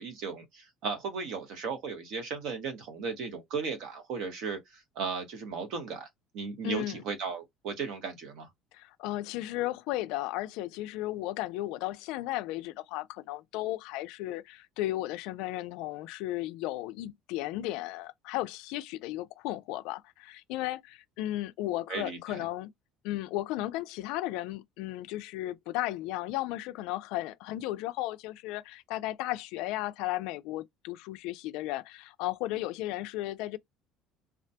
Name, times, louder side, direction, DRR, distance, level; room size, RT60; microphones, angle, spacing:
voice 1, 0.0-6.1 6.3-8.5 21.9-22.4, right 5 dB, 60° right, 0.9 m, -36 dB
voice 2, 6.6-7.0 8.7-22.7 23.0-33.6, left 16 dB, 70° left, 0.3 m, -35 dB
2.3 x 2.2 x 2.7 m
cardioid pair, 165°, 0 cm